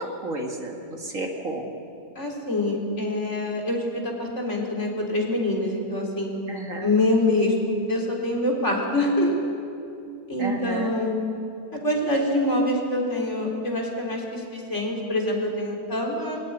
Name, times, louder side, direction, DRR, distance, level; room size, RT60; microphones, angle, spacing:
voice 1, 0.0-1.7 6.5-6.9 10.4-10.9, right 2 dB, 55° right, 1 dB, 2.4 m, -32 dB
voice 2, 2.2-6.3 6.8-9.3 10.3-11.1 11.7-16.4, left 1 dB, 45° left, -1 dB, 4.1 m, -25 dB
23.5 x 14.0 x 10.0 m, 2.6 s
omnidirectional pair, 1.7 m